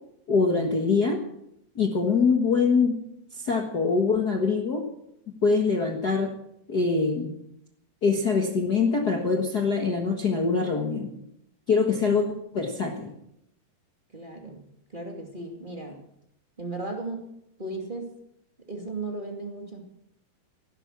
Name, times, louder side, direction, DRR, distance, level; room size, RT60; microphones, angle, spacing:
voice 1, 0.3-1.2 1.7-2.9 3.4-4.8 5.3-6.3 6.7-7.3 8.0-11.1 11.7-12.2 12.5-13.1, left 4 dB, 45° left, 2 dB, 1.3 m, -24 dB
voice 2, 14.1-14.6 14.9-16.0 16.6-17.3 17.6-18.1 18.7-19.8, right 2 dB, 15° right, 2 dB, 1.9 m, -35 dB
16.0 x 11.5 x 7.4 m, 0.78 s
omnidirectional pair, 3.9 m